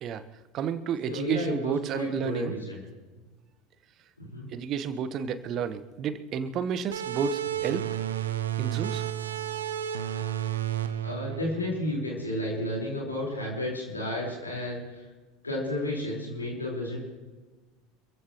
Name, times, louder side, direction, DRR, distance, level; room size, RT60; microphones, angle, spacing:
voice 1, 0.5-2.5 4.5-7.9 8.6-9.0, right 7 dB, 40° right, 12 dB, 1.2 m, -31 dB
voice 2, 1.1-2.8 4.2-4.5 11.0-15.1 15.4-17.0, left 1 dB, 80° left, -3 dB, 4.8 m, -32 dB
sound 1, 6.9-12.2, right 11 dB, 70° right, 0.8 m, -32 dB
27.0 x 15.0 x 3.2 m, 1.3 s
figure-of-eight pair, 75°, 0 cm